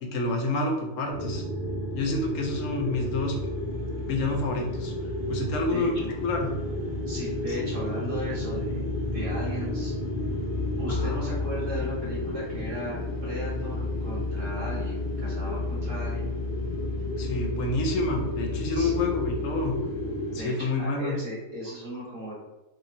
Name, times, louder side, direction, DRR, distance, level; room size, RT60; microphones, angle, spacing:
voice 1, 0.0-1.4 1.9-3.3 4.1-4.9 5.3-5.9 6.2-6.5 10.9-11.2 17.2-19.8 20.3-21.2, left 2 dB, 70° left, 2 dB, 0.9 m, -28 dB
sound 1, 1.1-20.4, left 1 dB, 50° left, 0.6 m, -31 dB
voice 2, 5.7-6.1 7.1-9.9 10.8-16.3 18.7-19.1 20.3-22.4, equal, 60° right, -8 dB, 2.1 m, -37 dB
3.5 x 2.9 x 2.6 m, 1.0 s
omnidirectional pair, 1.5 m